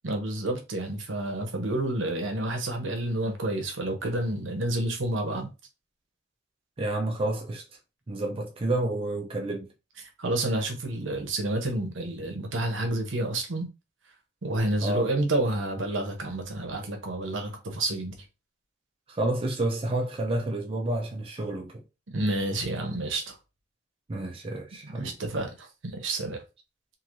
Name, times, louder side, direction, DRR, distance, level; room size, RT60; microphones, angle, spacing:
voice 1, 0.0-5.5 10.0-13.7 14.4-18.2 22.1-23.4 25.0-26.4, right 1 dB, 75° right, 0.8 m, -29 dB
voice 2, 6.8-7.6 8.1-9.7 14.8-15.1 19.1-21.8 24.1-25.1, right 2 dB, 30° right, 0.5 m, -29 dB
3.1 x 2.7 x 2.6 m
head